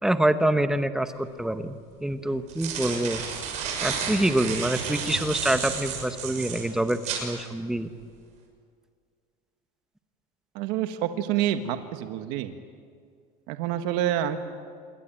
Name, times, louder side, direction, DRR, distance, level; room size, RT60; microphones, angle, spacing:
voice 1, 0.0-3.2 3.8-7.9, right 1 dB, 5° right, 9 dB, 0.9 m, -26 dB
sound 1, 1.2-1.3 2.3-7.3, right 6 dB, 40° right, 6.6 m, -32 dB
voice 2, 10.5-12.5 13.5-14.4, right 11 dB, 60° right, 8 dB, 1.6 m, -27 dB
27.0 x 22.5 x 8.9 m, 2.1 s
cardioid pair, 170°, 17 cm